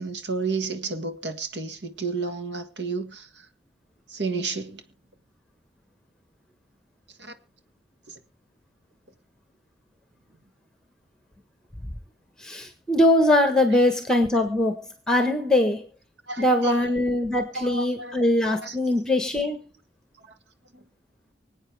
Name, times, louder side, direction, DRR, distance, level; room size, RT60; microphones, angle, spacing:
voice 1, 0.0-3.5 4.1-4.8 7.2-7.3 8.1-8.2 16.3-16.9 17.5-18.2 18.6-18.8 20.7-20.8, right 4 dB, 80° right, 1.7 m, -31 dB
voice 2, 12.4-14.7 15.1-15.8 16.4-19.6, left 1 dB, 5° left, 1.3 m, -21 dB
25.0 x 8.7 x 3.4 m
head